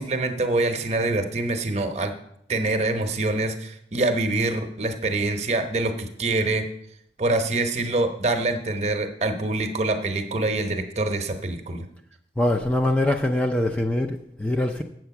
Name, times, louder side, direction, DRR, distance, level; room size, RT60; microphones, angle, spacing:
voice 1, 0.0-2.1 2.5-6.6 7.2-11.9, right 2 dB, 40° right, 6 dB, 0.9 m, -25 dB
voice 2, 12.4-14.8, left 1 dB, 5° left, 2 dB, 0.4 m, -23 dB
7.8 x 7.4 x 5.8 m, 0.74 s
head